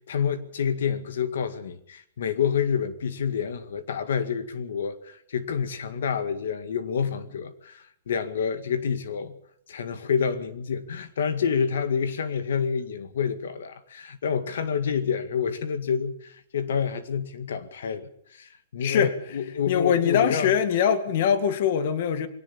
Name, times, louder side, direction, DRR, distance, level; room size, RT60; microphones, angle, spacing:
voice 1, 0.0-9.4 9.7-20.5, left 7 dB, 80° left, 2.0 m, -28 dB
voice 2, 18.8-19.1 19.7-22.3, left 8 dB, 50° left, 2.1 m, -22 dB
22.0 x 18.0 x 7.3 m
hypercardioid pair, 165°, 0 cm